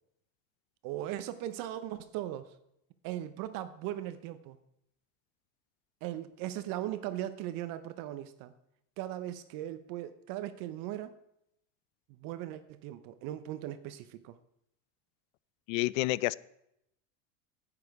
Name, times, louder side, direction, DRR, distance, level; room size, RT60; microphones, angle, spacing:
voice 1, 0.8-2.5 3.0-4.6 6.0-8.5 9.0-11.2 12.1-14.4, right 13 dB, 55° right, 12 dB, 0.7 m, -38 dB
voice 2, 15.7-16.3, left 19 dB, 70° left, 21 dB, 0.5 m, -29 dB
9.8 x 8.7 x 4.7 m, 0.80 s
supercardioid pair, 120°, 41 cm